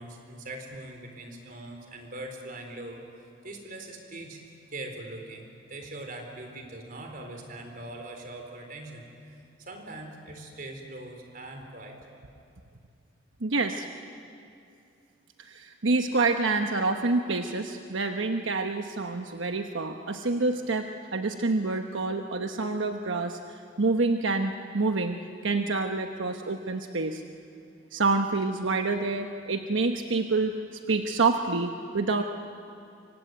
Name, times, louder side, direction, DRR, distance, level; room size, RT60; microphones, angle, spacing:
voice 1, 0.0-3.0 3.4-4.4 4.7-12.0, right 2 dB, 45° right, 4 dB, 4.1 m, -41 dB
voice 2, 13.4-13.9 15.4-25.2 25.4-27.2 27.9-30.5 30.9-32.2, right 3 dB, 85° right, 5 dB, 1.1 m, -27 dB
26.0 x 24.5 x 9.4 m, 2.5 s
head